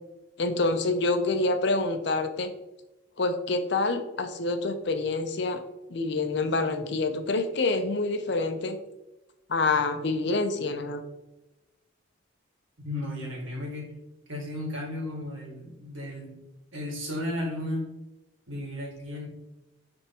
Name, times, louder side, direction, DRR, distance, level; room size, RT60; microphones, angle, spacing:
voice 1, 0.4-2.5 3.2-5.6 5.9-8.8 9.5-11.0, left 3 dB, 55° left, 7 dB, 0.6 m, -27 dB
voice 2, 12.8-13.9 14.3-16.4 16.7-17.9 18.5-19.3, left 1 dB, 70° right, -1 dB, 1.9 m, -34 dB
10.0 x 3.5 x 2.9 m, 0.99 s
head